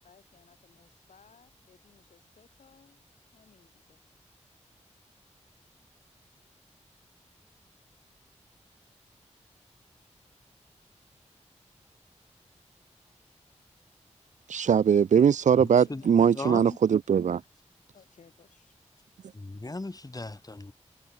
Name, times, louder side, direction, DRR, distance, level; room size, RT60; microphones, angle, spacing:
voice 1, 0.0-3.0 3.3-4.0 15.9-16.1 17.9-18.7, left 6 dB, 90° left, 5.6 m, -60 dB
voice 2, 14.5-17.4 19.2-19.3, right 7 dB, 85° right, 0.5 m, -21 dB
voice 3, 16.4-16.7 19.3-20.7, left 2 dB, 30° left, 2.4 m, -37 dB
cardioid pair, 50°, 12 cm